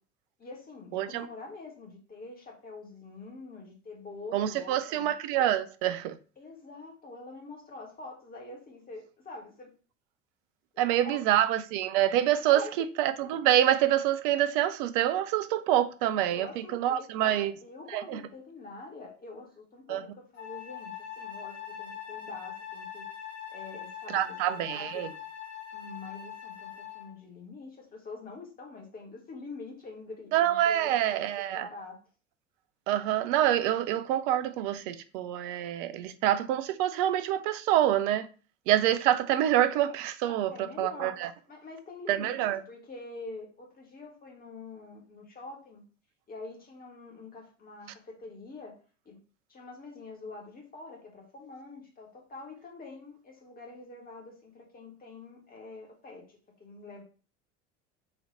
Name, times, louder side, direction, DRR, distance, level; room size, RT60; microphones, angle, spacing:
voice 1, 0.4-5.1 6.4-9.7 10.7-11.4 12.5-12.7 16.3-23.1 23.5-25.1 25.7-32.0 40.3-41.2 41.5-45.8 46.3-48.8 49.0-49.2 49.5-57.0, left 3 dB, 25° left, 1.5 m, -45 dB
voice 2, 0.9-1.3 4.3-6.2 10.8-17.5 17.9-18.2 19.9-20.1 24.1-25.1 30.3-31.7 32.9-38.3 38.7-41.3 42.1-42.6, right 12 dB, 45° right, 0.5 m, -26 dB
Wind instrument woodwind instrument, 20.4-27.1, left 9 dB, 45° left, 1.8 m, -42 dB
4.1 x 2.8 x 3.8 m
figure-of-eight pair, 70°, 37 cm